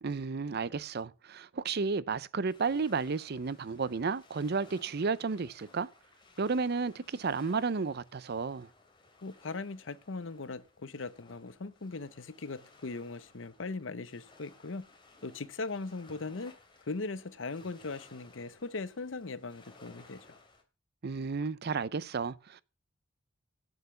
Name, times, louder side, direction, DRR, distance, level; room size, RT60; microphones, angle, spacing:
voice 1, 0.0-5.9 6.4-8.7 21.0-22.6, right 4 dB, 55° right, 0.6 m, -32 dB
sound 1, 2.5-20.6, left 3 dB, 25° left, 2.8 m, -59 dB
voice 2, 9.2-14.9 15.2-16.5 16.9-20.4, left 3 dB, 70° left, 0.8 m, -39 dB
9.1 x 8.0 x 6.9 m
head